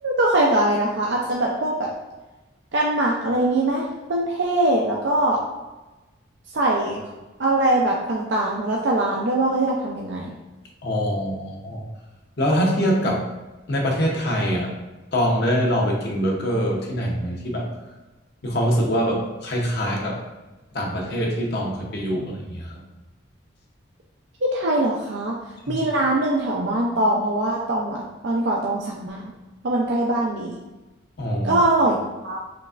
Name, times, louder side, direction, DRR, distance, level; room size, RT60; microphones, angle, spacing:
voice 1, 0.0-1.9 2.7-5.4 6.5-7.0 7.4-10.3 24.4-25.3 25.7-29.3 29.6-30.6 31.4-32.0 32.2-32.4, right 1 dB, 60° right, -2 dB, 0.5 m, -22 dB
voice 2, 10.8-11.8 12.4-13.2 13.7-14.7 15.1-17.7 18.4-20.2 20.7-22.8 25.7-25.8 31.2-31.6, equal, 55° left, -1 dB, 0.8 m, -24 dB
5.2 x 3.3 x 2.4 m, 1.1 s
head